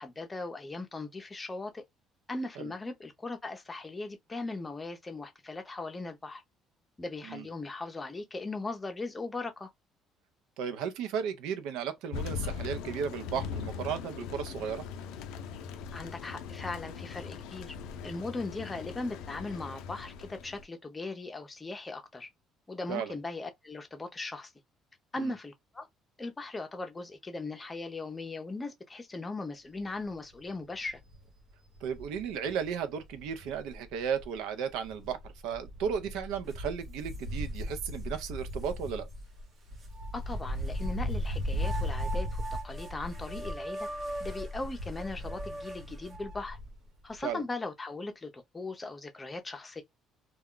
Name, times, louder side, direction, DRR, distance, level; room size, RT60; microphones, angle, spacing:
voice 1, 0.0-1.8 2.3-6.4 7.0-9.7 15.9-17.7 18.0-22.3 22.7-24.5 25.1-25.9 26.2-31.0 40.1-43.9 44.2-46.6 47.0-49.8, left 3 dB, 15° left, 0.6 m, -39 dB
voice 2, 10.6-14.8 22.9-23.1 25.2-25.3 31.8-35.2 35.4-39.1 47.2-47.4, right 7 dB, 90° right, 0.6 m, -34 dB
Thunder, 12.1-20.6, left 6 dB, 90° left, 0.4 m, -40 dB
Wind, 29.8-30.1 30.5-30.6 30.8-34.4 34.7-46.9 47.1-47.2, equal, 65° right, 1.0 m, -37 dB
sound 1, 36.5-36.6 37.1-38.0 38.6-38.7 39.8-40.9 41.5-46.4, right 1 dB, 35° right, 0.8 m, -42 dB
2.3 x 2.1 x 3.6 m
cardioid pair, 130°, 0 cm